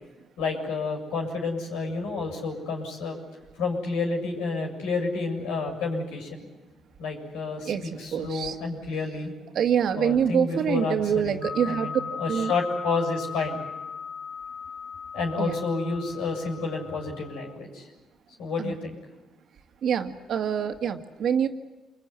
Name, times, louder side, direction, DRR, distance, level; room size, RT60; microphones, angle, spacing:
voice 1, 0.4-3.2 3.6-6.5 7.0-9.3 10.0-13.6 15.1-17.9 18.4-19.0, left 4 dB, 85° left, 1 dB, 7.3 m, -30 dB
voice 2, 7.6-8.6 9.5-11.9 12.3-12.5 15.4-15.6 18.6-18.7 19.8-21.5, right 8 dB, 65° right, 7 dB, 1.9 m, -25 dB
sound 1, 11.4-17.5, left 6 dB, 55° left, 1.7 m, -38 dB
27.5 x 22.0 x 9.7 m, 1.2 s
supercardioid pair, 75°, 0 cm